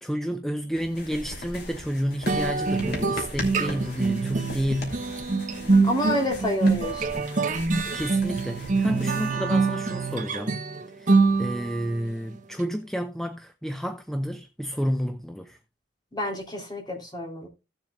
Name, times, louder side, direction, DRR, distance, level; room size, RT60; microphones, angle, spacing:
voice 1, 0.0-5.0 7.9-10.6 10.9-15.6, equal, ahead, 0.6 m, -30 dB
sound 1, 0.7-9.3, left 1 dB, 60° left, 3.0 m, -39 dB
sound 2, 2.3-11.9, right 3 dB, 45° right, 1.3 m, -25 dB
voice 2, 5.8-7.2 16.1-17.5, left 1 dB, 25° left, 3.2 m, -29 dB
17.0 x 7.2 x 2.3 m
head